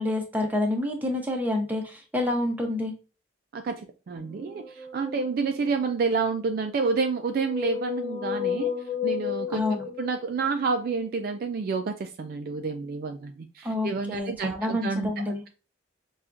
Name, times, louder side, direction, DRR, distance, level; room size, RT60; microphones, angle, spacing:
voice 1, 0.0-2.9 9.5-9.8 13.6-15.4, left 1 dB, 10° right, 1 dB, 0.7 m, -28 dB
voice 2, 3.5-8.7 9.0-9.6 10.0-15.5, right 4 dB, 50° right, 6 dB, 0.3 m, -29 dB
sound 1, 4.3-6.0 6.8-10.7, left 8 dB, 50° left, 1.1 m, -33 dB
5.6 x 2.3 x 2.5 m, 0.33 s
head